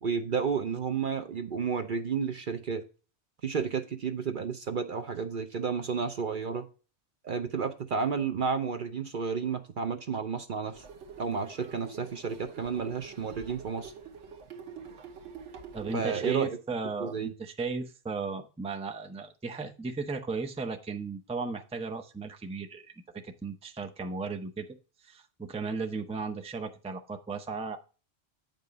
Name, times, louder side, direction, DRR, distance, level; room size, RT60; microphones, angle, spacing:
voice 1, 0.0-2.8 3.4-6.7 7.2-10.8 11.2-13.9 15.9-16.5 17.0-17.3, right 6 dB, 50° right, 0.8 m, -31 dB
sound 1, 10.8-16.1, right 6 dB, 85° right, 1.3 m, -46 dB
voice 2, 15.7-24.7 25.0-27.8, right 4 dB, 5° right, 0.6 m, -36 dB
8.8 x 5.4 x 4.1 m
omnidirectional pair, 1.2 m